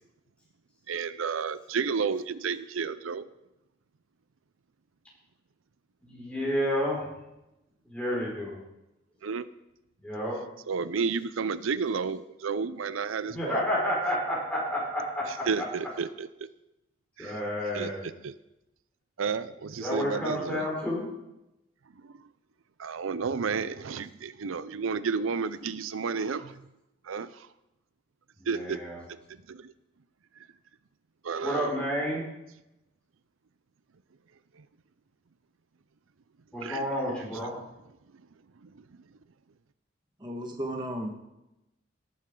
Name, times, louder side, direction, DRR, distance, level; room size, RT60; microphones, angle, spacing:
voice 1, 0.9-3.2 9.2-9.4 10.7-13.6 15.5-16.3 17.2-17.4 17.7-17.9 18.2-18.3 19.2-20.7 22.0-22.1 22.8-26.6 27.1-27.5 28.5-28.8 29.5-29.7 31.2-31.8 36.6-36.9, right 5 dB, 90° right, 15 dB, 0.5 m, -31 dB
voice 2, 6.0-7.1 7.9-8.6 10.0-10.4 13.3-15.7 17.2-18.2 19.8-21.1 28.4-29.0 31.4-32.3 36.5-37.5, equal, 5° left, -5 dB, 5.2 m, -30 dB
voice 3, 40.2-41.1, right 1 dB, 20° right, 1 dB, 1.6 m, -34 dB
18.5 x 8.8 x 3.8 m, 0.91 s
head